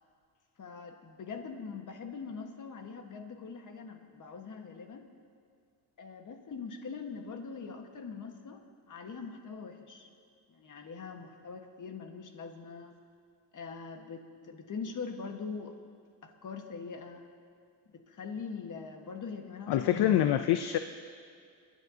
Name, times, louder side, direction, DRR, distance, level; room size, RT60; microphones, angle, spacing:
voice 1, 0.6-5.1 6.0-8.6 8.9-10.1 10.5-12.9 13.5-15.8 16.2-17.2 17.9-20.5, left 5 dB, 45° left, 4 dB, 1.5 m, -42 dB
voice 2, 19.7-20.8, left 11 dB, 65° left, 9 dB, 0.6 m, -25 dB
26.5 x 10.5 x 2.8 m, 2.2 s
cardioid pair, 100°, 42 cm